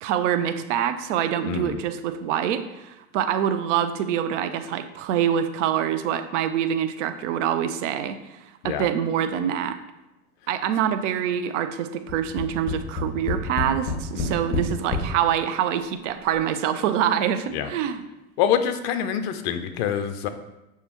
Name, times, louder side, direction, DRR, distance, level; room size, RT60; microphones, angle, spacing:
voice 1, 0.0-8.4 8.6-9.8 10.5-18.0, right 9 dB, 55° right, 9 dB, 0.5 m, -25 dB
voice 2, 1.4-1.8 8.6-8.9 14.1-14.4 17.5-17.7 18.4-20.3, left 9 dB, 50° left, 8 dB, 0.5 m, -26 dB
Tap, 12.1-15.1 15.9-16.0 16.3-16.4, left 3 dB, 20° left, 0.9 m, -28 dB
6.6 x 2.3 x 2.9 m, 0.94 s
hypercardioid pair, 100°, 44 cm